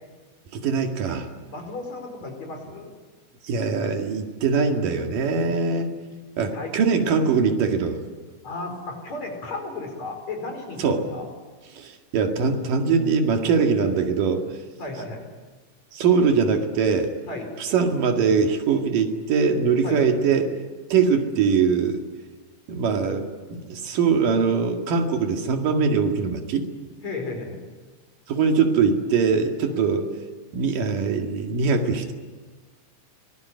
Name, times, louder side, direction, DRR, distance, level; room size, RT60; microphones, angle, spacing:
voice 1, 0.5-1.3 3.4-5.9 6.4-8.0 10.8-11.0 11.7-14.5 15.9-17.1 17.6-20.5 20.9-22.0 22.7-26.7 28.3-30.1 30.5-32.1, right 5 dB, 75° right, 4 dB, 3.7 m, -22 dB
voice 2, 1.5-2.9 6.4-6.7 8.4-11.3 14.8-15.2 17.3-17.5 19.8-20.0 27.0-27.6 29.7-29.8, left 3 dB, 55° left, 4 dB, 6.0 m, -34 dB
24.0 x 20.5 x 9.5 m, 1.3 s
omnidirectional pair, 3.8 m